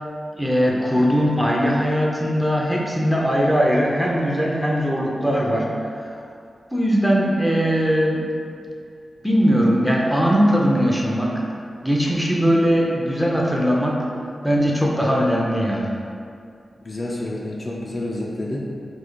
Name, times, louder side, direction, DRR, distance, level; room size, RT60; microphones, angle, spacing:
voice 1, 0.4-5.7 6.0-6.2 6.7-8.3 9.2-11.4 11.8-14.0 14.4-15.9, equal, ahead, -3 dB, 0.6 m, -20 dB
voice 2, 16.8-18.6, left 1 dB, 45° left, -4 dB, 0.5 m, -29 dB
3.2 x 2.4 x 3.9 m, 2.3 s
cardioid pair, 50°, 0 cm